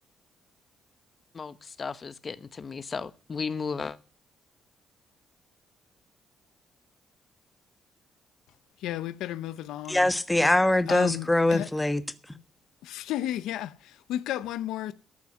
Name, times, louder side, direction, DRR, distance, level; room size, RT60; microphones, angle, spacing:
voice 1, 1.3-4.0, left 5 dB, 40° left, 1.0 m, -35 dB
voice 2, 8.8-10.1 10.9-11.7 12.8-14.9, left 13 dB, 90° left, 0.6 m, -33 dB
voice 3, 9.9-12.0, left 1 dB, 10° left, 1.2 m, -23 dB
13.5 x 5.7 x 9.5 m
cardioid pair, 90°, 0 cm